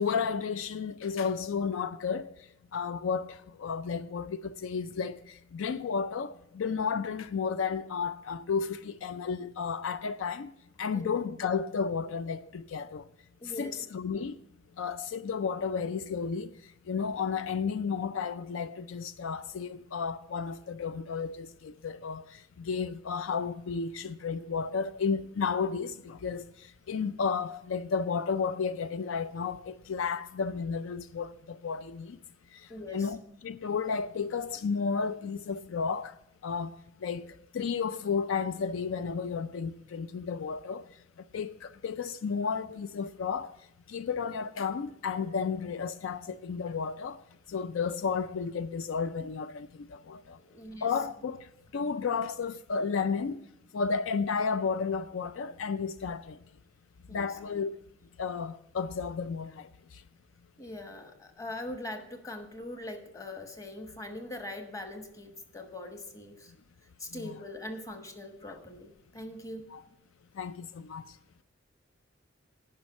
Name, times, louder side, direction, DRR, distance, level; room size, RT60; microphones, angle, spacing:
voice 1, 0.0-2.3 2.7-10.5 10.8-13.0 13.4-14.4 14.8-16.5 16.9-26.5 26.9-32.2 32.5-32.6 32.9-33.2 33.4-36.1 36.4-37.3 37.5-40.9 41.3-43.5 43.9-47.2 47.5-50.4 50.8-51.5 51.7-53.4 53.7-56.4 57.1-57.8 58.2-59.7 67.1-67.4 69.7-69.8 70.4-71.1, left 5 dB, 80° left, 0.4 m, -32 dB
voice 2, 13.4-13.8 32.7-33.1 50.4-50.9 57.1-57.3 60.6-66.5 67.0-69.7, left 1 dB, 15° left, 1.1 m, -42 dB
10.5 x 5.5 x 7.0 m
head